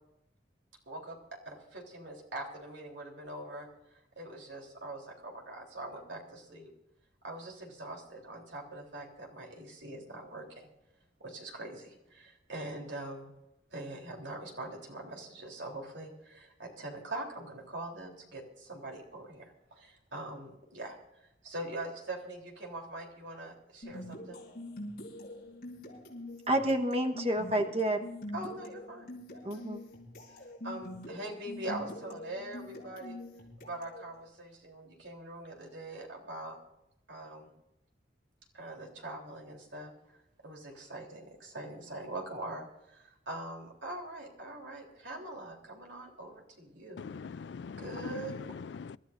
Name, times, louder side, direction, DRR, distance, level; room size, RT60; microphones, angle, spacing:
voice 1, 0.9-1.2 1.5-6.7 7.2-10.7 11.2-13.3 13.7-24.4 28.3-29.6 30.6-33.2 33.6-36.6 37.1-37.5 38.5-40.2 40.4-47.1 47.8-48.5, right 1 dB, 80° right, 3.5 m, -43 dB
sound 1, 23.8-34.1, left 1 dB, 50° left, 4.2 m, -45 dB
voice 2, 26.5-28.1 29.4-29.8, right 1 dB, 35° right, 1.2 m, -29 dB
voice 3, 47.0-49.0, left 5 dB, 75° left, 0.4 m, -41 dB
26.0 x 13.0 x 2.6 m
head